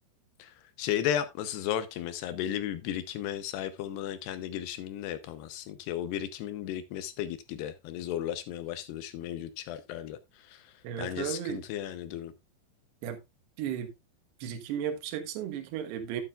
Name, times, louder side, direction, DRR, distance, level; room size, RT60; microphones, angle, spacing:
voice 1, 0.4-12.3, left 11 dB, 75° left, 2.7 m, -35 dB
voice 2, 10.8-11.6 13.0-13.2 13.6-13.9 14.4-16.2, right 9 dB, 70° right, 3.2 m, -34 dB
11.5 x 9.0 x 2.4 m
omnidirectional pair, 5.2 m